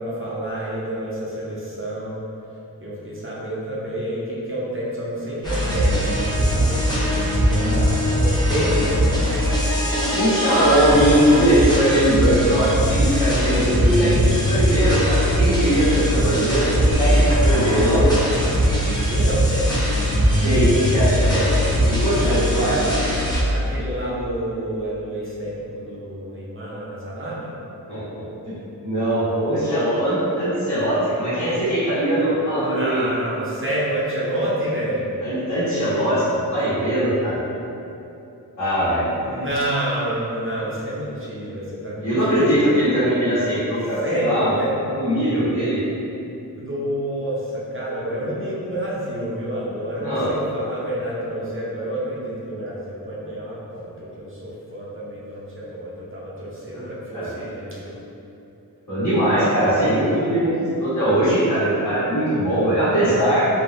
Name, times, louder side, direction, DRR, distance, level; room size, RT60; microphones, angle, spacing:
voice 1, 0.0-2.2 2.8-9.4 16.1-16.4 19.1-19.9 22.2-27.5 32.5-35.1 39.2-42.8 44.0-44.8 46.6-57.9, right 1 dB, 35° right, -7 dB, 0.6 m, -29 dB
sound 1, 5.4-23.4, equal, 10° left, 0.6 m, -20 dB
voice 2, 10.0-18.0 20.4-21.5 21.8-22.7 27.9-28.0 28.4-28.5 28.8-33.0 35.2-37.4 38.6-39.0 42.0-44.5 45.0-45.8 50.0-50.3 57.1-57.3 58.9-60.5 60.8-63.5, right 1 dB, 50° left, -15 dB, 1.3 m, -20 dB
3.2 x 2.4 x 2.6 m, 2.8 s
wide cardioid pair, 85°, 36 cm